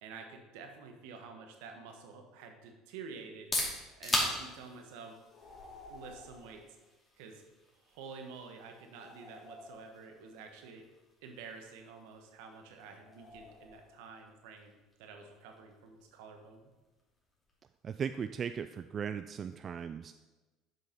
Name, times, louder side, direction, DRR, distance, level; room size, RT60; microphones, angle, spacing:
voice 1, 0.0-3.5 4.0-5.2 5.9-6.6 7.2-7.4 7.9-10.9 11.2-16.7, right 5 dB, 75° right, 4 dB, 1.3 m, -49 dB
sound 1, 3.2-18.9, left 1 dB, 20° left, 2.6 m, -43 dB
sound 2, 5.3-6.6 8.9-10.3 13.0-14.2, left 2 dB, 45° left, 2.4 m, -53 dB
voice 2, 17.8-20.1, right 7 dB, 40° right, 10 dB, 0.3 m, -37 dB
7.7 x 5.5 x 5.3 m, 1.2 s
hypercardioid pair, 80°, 0 cm